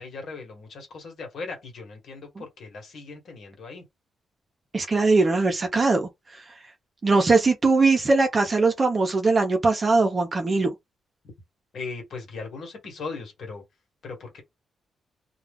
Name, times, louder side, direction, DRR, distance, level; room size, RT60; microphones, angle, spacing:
voice 1, 0.0-3.8 11.7-13.6 14.0-14.4, left 4 dB, 65° left, 1.2 m, -38 dB
voice 2, 4.7-6.4 7.0-10.7, right 3 dB, 35° right, 0.6 m, -21 dB
2.3 x 2.3 x 3.4 m
cardioid pair, 100°, 0 cm